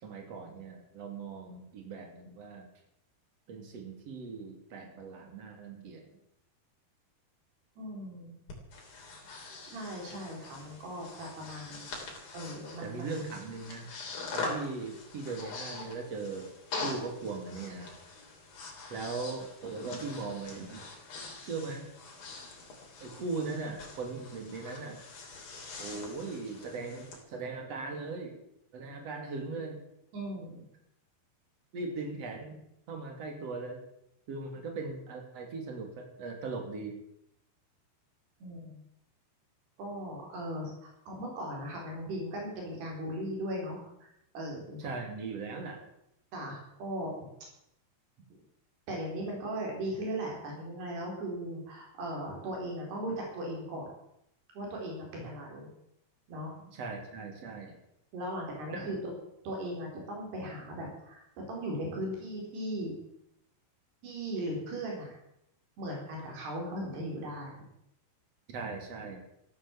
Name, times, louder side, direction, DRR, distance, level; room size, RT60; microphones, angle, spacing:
voice 1, 0.0-2.7 3.5-6.0 12.8-13.9 14.3-16.5 16.8-17.9 18.9-20.8 21.4-21.9 23.0-25.0 25.8-28.4 28.7-29.8 31.7-32.6 32.9-33.8 34.3-37.0 44.8-45.8 55.2-55.3 56.7-57.8 58.7-58.9 68.5-69.2, right 4 dB, 40° right, 3 dB, 3.5 m, -39 dB
voice 2, 7.8-8.4 9.7-11.9 12.3-13.1 30.1-30.7 38.4-38.8 39.8-44.9 46.3-47.2 48.9-53.9 54.5-55.7 56.3-56.5 58.1-59.0 59.4-61.2 61.5-63.0 64.0-65.2 65.8-67.7, right 1 dB, 85° right, -1 dB, 6.3 m, -38 dB
Breathing, 8.5-27.2, left 3 dB, 65° left, 5.1 m, -43 dB
15.0 x 12.0 x 7.3 m, 0.79 s
omnidirectional pair, 4.6 m